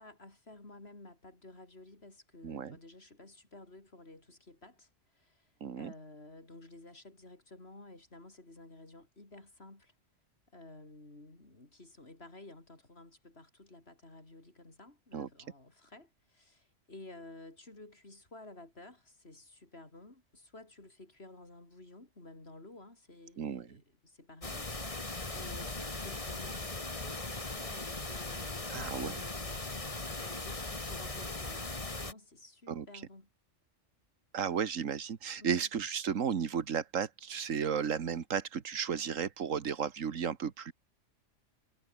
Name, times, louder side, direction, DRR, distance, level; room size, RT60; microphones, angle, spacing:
voice 1, 0.0-9.9 10.5-33.3 35.4-35.7, left 2 dB, 50° left, 4.8 m, -53 dB
voice 2, 2.4-2.8 5.6-5.9 15.1-15.3 23.4-23.8 28.7-29.2 32.7-32.9 34.3-40.7, right 7 dB, 85° right, 1.7 m, -34 dB
sound 1, 24.4-32.1, left 2 dB, 25° left, 2.1 m, -39 dB
omnidirectional pair, 1.3 m